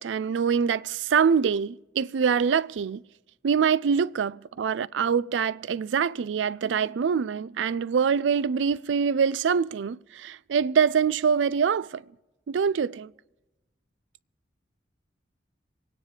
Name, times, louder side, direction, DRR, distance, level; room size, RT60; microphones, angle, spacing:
voice 1, 0.0-3.0 3.4-12.0 12.5-13.1, right 6 dB, 85° right, 0.4 m, -24 dB
27.0 x 9.6 x 3.3 m
head